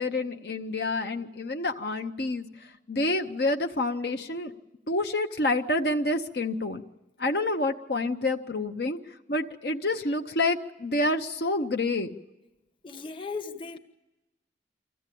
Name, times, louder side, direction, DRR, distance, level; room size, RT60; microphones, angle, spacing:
voice 1, 0.0-4.5 4.9-6.8 7.2-12.1, left 2 dB, 60° left, 5 dB, 0.9 m, -28 dB
voice 2, 12.8-13.8, left 4 dB, 30° left, 6 dB, 1.1 m, -36 dB
25.0 x 15.5 x 8.4 m, 1.0 s
head